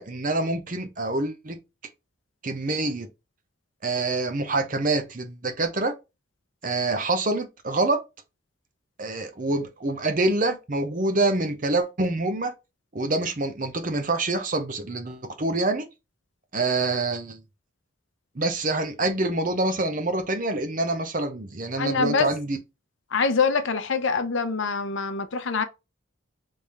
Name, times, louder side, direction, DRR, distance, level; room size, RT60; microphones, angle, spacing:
voice 1, 0.0-1.6 2.4-3.1 3.8-5.9 6.6-8.0 9.0-12.5 12.9-15.9 16.5-17.4 18.4-22.6, right 2 dB, 40° right, 0.7 m, -26 dB
voice 2, 21.8-22.3 23.1-25.6, left 5 dB, 70° left, 0.7 m, -24 dB
3.5 x 3.4 x 4.2 m
head